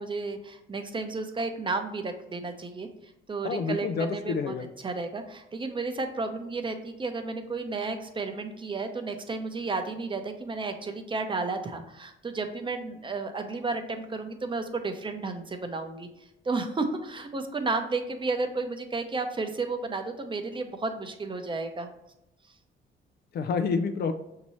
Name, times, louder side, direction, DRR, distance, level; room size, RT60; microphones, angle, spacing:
voice 1, 0.0-2.9 3.3-16.1 16.4-21.9, right 3 dB, 25° right, 6 dB, 0.6 m, -32 dB
voice 2, 3.4-4.7 23.3-24.1, left 5 dB, 55° left, 8 dB, 0.4 m, -28 dB
5.9 x 2.8 x 3.0 m, 0.90 s
cardioid pair, 90°, 20 cm